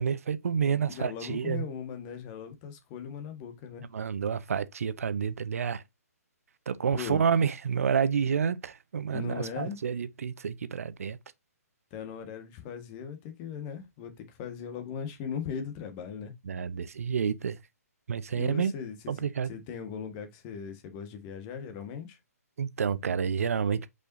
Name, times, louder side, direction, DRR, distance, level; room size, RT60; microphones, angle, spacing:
voice 1, 0.0-1.6 3.9-5.8 6.7-11.2 16.5-17.6 18.1-18.7 19.1-19.5 22.6-23.8, right 7 dB, 60° right, 0.8 m, -29 dB
voice 2, 0.9-3.8 6.9-7.2 9.1-9.8 11.9-16.3 18.3-22.2, left 7 dB, 30° left, 1.7 m, -39 dB
6.7 x 5.3 x 2.7 m
figure-of-eight pair, 130°, 9 cm